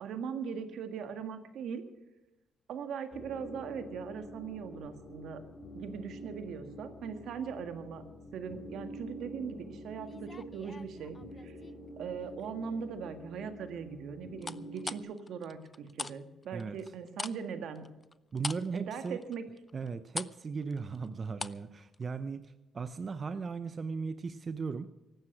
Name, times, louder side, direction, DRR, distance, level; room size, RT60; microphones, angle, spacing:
voice 1, 0.0-1.8 2.7-5.4 5.7-8.0 8.3-11.6 12.0-17.9 18.7-19.4, right 6 dB, 75° right, 8 dB, 1.6 m, -40 dB
sound 1, 3.1-15.0, equal, 50° left, 3.4 m, -47 dB
sound 2, 10.0-11.7 12.2-12.7 14.4-16.2 16.4-21.7 21.9-22.1, left 3 dB, 25° left, 0.5 m, -42 dB
voice 2, 18.3-19.2 19.7-24.9, right 5 dB, 40° right, 11 dB, 0.7 m, -37 dB
15.5 x 12.0 x 5.9 m, 1.0 s
cardioid pair, 90°, 0 cm